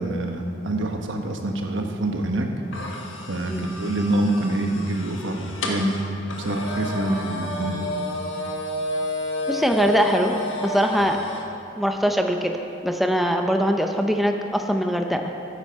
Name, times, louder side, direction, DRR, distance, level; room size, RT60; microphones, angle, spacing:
voice 1, 0.0-2.5 3.3-5.9 6.4-7.8, right 1 dB, 75° right, 3 dB, 1.3 m, -26 dB
sound 1, 2.7-11.5, left 1 dB, 80° left, 1.5 m, -31 dB
voice 2, 9.5-10.3 10.6-11.2 11.8-12.5 12.8-15.2, equal, ahead, 3 dB, 0.6 m, -22 dB
13.5 x 9.8 x 4.7 m, 2.6 s
head